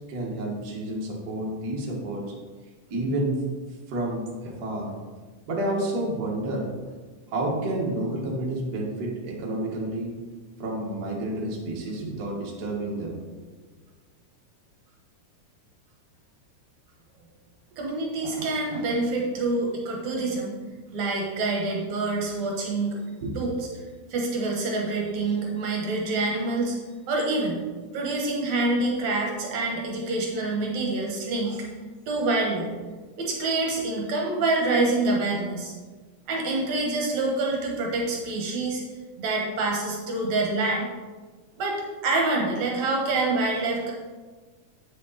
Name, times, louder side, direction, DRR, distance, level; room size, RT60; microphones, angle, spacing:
voice 1, 0.0-2.3 2.9-3.4 3.9-4.9 5.5-6.8 7.3-10.2 10.6-13.2 22.9-23.3, right 1 dB, 40° right, -3 dB, 1.6 m, -30 dB
voice 2, 17.8-20.6 20.9-23.0 23.4-23.6 24.1-26.8 27.1-27.6 27.9-31.7 32.1-32.7 33.2-35.7 36.3-38.8 39.2-40.9 41.6-41.8 42.0-43.9, right 2 dB, 70° right, -1 dB, 2.4 m, -26 dB
8.4 x 6.5 x 4.1 m, 1.4 s
omnidirectional pair, 3.6 m